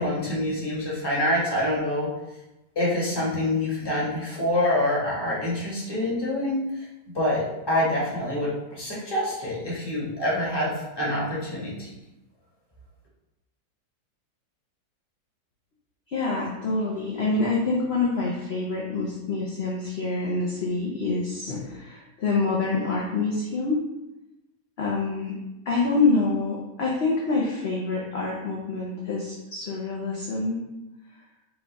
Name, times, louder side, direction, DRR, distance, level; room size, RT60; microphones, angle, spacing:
voice 1, 0.0-2.1 2.7-6.8 7.1-11.9, left 1 dB, 15° left, -6 dB, 1.1 m, -26 dB
voice 2, 16.1-23.8 24.8-25.3 25.7-30.7, left 3 dB, 55° left, -4 dB, 0.7 m, -26 dB
5.1 x 2.4 x 4.0 m, 0.97 s
omnidirectional pair, 1.7 m